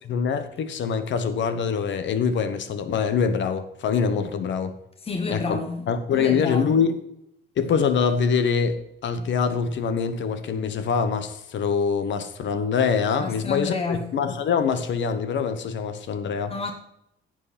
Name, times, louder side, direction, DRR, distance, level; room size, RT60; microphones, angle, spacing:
voice 1, 0.0-4.7 5.3-5.6 5.9-6.9 7.6-16.6, left 6 dB, 70° left, 1.2 m, -24 dB
voice 2, 5.0-5.9 6.1-6.7 13.2-14.0 16.5-16.7, left 3 dB, 30° left, 1.3 m, -29 dB
11.0 x 7.6 x 4.3 m
cardioid pair, 90°, 20 cm